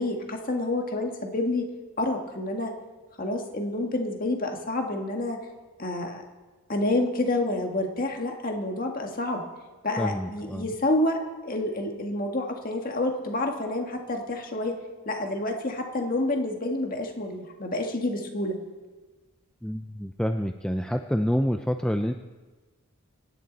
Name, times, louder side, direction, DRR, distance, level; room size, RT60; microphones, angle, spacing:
voice 1, 0.0-1.7 2.0-2.7 3.2-5.4 5.8-6.2 6.7-9.4 9.8-14.7 15.1-18.6, left 2 dB, 40° left, 3 dB, 1.8 m, -28 dB
voice 2, 10.0-10.7 19.6-22.1, equal, 5° left, 6 dB, 0.4 m, -27 dB
25.5 x 10.5 x 4.0 m, 1.3 s
head